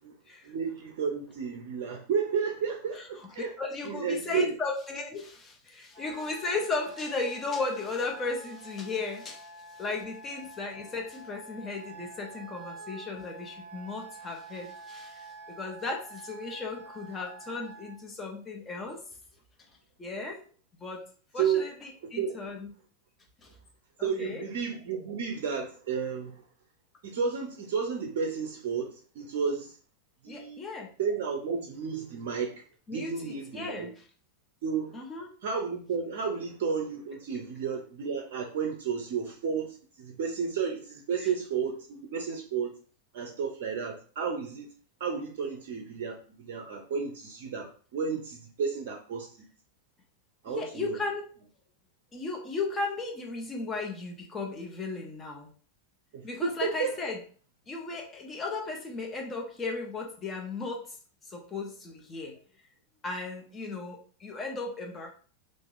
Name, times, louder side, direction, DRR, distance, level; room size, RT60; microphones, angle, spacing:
voice 1, 0.4-3.5 3.8-4.5 21.4-21.7 22.2-22.4 24.0-26.4 27.0-29.8 30.2-30.6 31.0-32.6 32.9-33.9 34.6-35.0 35.4-42.7 43.1-44.7 45.0-49.4 50.4-51.0 56.1-57.1, right 6 dB, 50° right, 2 dB, 0.5 m, -32 dB
voice 2, 2.9-19.0 20.0-20.4 20.8-21.0 21.3-22.7 23.4-23.5 24.0-24.5 30.3-30.9 32.9-33.9 34.9-35.3 41.2-41.3 50.5-51.3 52.1-55.5 56.2-57.2 57.7-61.0 61.2-62.4 63.0-65.1, left 3 dB, 20° left, 1 dB, 0.9 m, -36 dB
Wind instrument woodwind instrument, 5.9-18.0, right 2 dB, 5° left, 1.2 m, -47 dB
2.9 x 2.6 x 3.7 m, 0.43 s
figure-of-eight pair, 90°, 0 cm